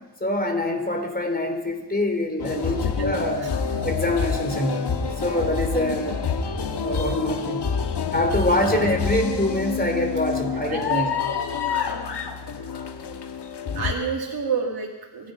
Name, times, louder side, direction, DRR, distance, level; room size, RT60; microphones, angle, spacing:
voice 1, 0.2-3.5 3.8-6.2 6.8-7.6 8.1-11.1, left 1 dB, 20° left, 4 dB, 4.1 m, -25 dB
sound 1, 2.4-14.0, left 6 dB, 70° left, 1.5 m, -27 dB
voice 2, 10.7-11.1 11.7-12.1 13.7-15.3, right 5 dB, 60° right, -3 dB, 2.5 m, -29 dB
24.5 x 10.5 x 5.4 m, 1.1 s
cardioid pair, 45°, 42 cm